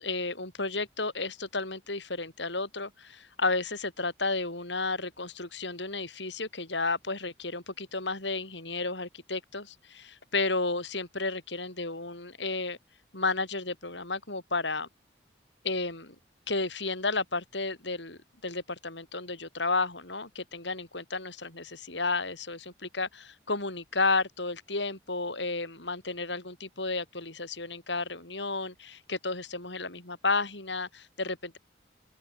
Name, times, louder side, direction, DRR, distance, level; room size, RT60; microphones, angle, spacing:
voice 1, 0.0-12.8 13.1-14.9 15.6-16.2 16.5-31.6, left 3 dB, 75° left, 7.2 m, -32 dB
open air
head